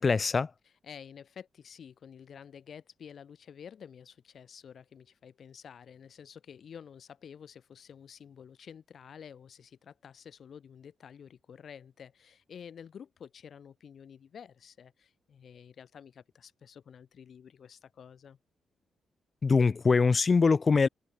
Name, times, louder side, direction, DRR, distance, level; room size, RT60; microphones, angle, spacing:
voice 1, 0.0-0.5 19.4-20.9, left 4 dB, 30° left, 0.3 m, -23 dB
voice 2, 0.6-18.4, left 7 dB, 50° left, 2.6 m, -50 dB
wide cardioid pair, 165°, 0 cm